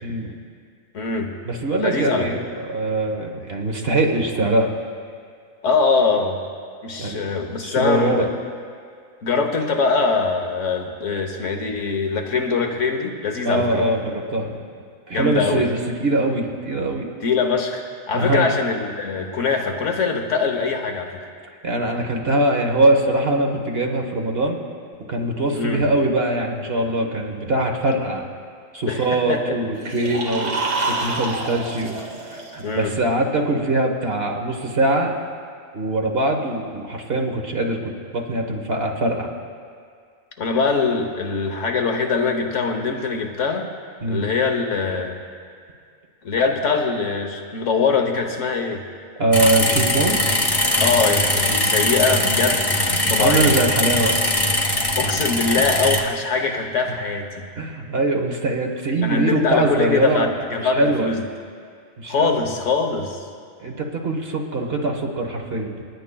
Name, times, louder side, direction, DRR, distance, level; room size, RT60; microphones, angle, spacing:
voice 1, 0.0-0.4 1.4-4.7 7.0-7.3 7.6-8.3 13.4-14.6 15.1-17.1 18.1-18.5 21.6-24.6 25.1-28.2 28.7-30.6 30.9-35.1 35.7-39.3 44.0-44.3 49.2-50.2 52.9-54.2 57.6-61.1 62.0-62.4 63.6-65.8, right 2 dB, 50° right, 1 dB, 1.4 m, -22 dB
voice 2, 0.9-1.3 1.8-2.2 5.6-6.4 6.8-8.3 9.2-13.9 15.1-15.7 17.2-17.8 18.1-21.2 25.5-25.8 28.8-29.0 29.3-29.6 32.6-33.0 40.4-43.7 44.1-45.2 46.2-48.8 50.8-53.5 55.0-57.4 59.0-61.2 62.1-63.2, left 4 dB, 70° left, 3 dB, 1.3 m, -22 dB
sound 1, 29.8-32.9, right 3 dB, 65° right, 2.0 m, -28 dB
sound 2, 49.3-56.0, left 1 dB, 20° left, 0.9 m, -21 dB
29.5 x 10.0 x 2.3 m, 2.1 s
omnidirectional pair, 1.4 m